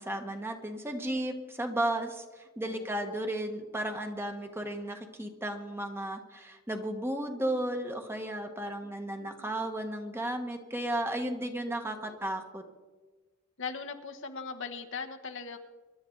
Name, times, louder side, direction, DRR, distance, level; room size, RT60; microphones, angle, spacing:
voice 1, 0.0-12.6, right 1 dB, 10° right, 5 dB, 1.3 m, -34 dB
voice 2, 2.6-3.2 8.8-9.5 11.7-12.2 13.6-15.6, left 5 dB, 60° left, 5 dB, 1.3 m, -41 dB
25.0 x 11.5 x 3.9 m, 1.3 s
head